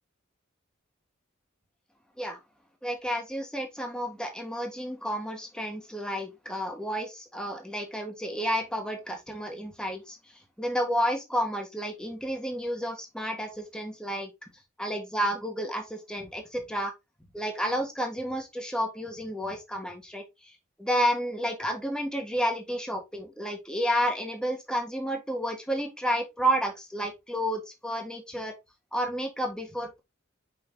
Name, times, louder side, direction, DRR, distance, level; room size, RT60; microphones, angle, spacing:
voice 1, 2.8-10.2 10.6-14.3 14.8-16.9 17.3-28.5 28.9-30.0, equal, 5° left, 1.4 m, -31 dB
5.7 x 5.2 x 3.8 m
head